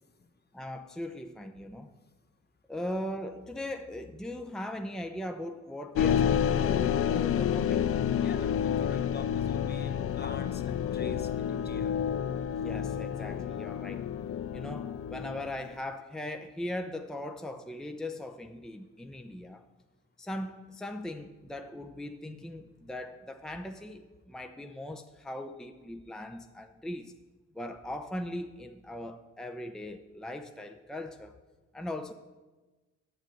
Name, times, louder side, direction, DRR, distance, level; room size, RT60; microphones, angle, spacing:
voice 1, 0.5-1.9 2.7-7.8 12.5-14.1 14.5-19.6 20.2-27.1 27.5-31.3 31.7-32.1, left 1 dB, ahead, 0.6 m, -39 dB
sound 1, 6.0-15.7, left 8 dB, 50° left, 0.4 m, -29 dB
voice 2, 8.2-12.0, left 4 dB, 35° left, 1.0 m, -43 dB
9.2 x 7.0 x 7.8 m
cardioid pair, 90°, 30 cm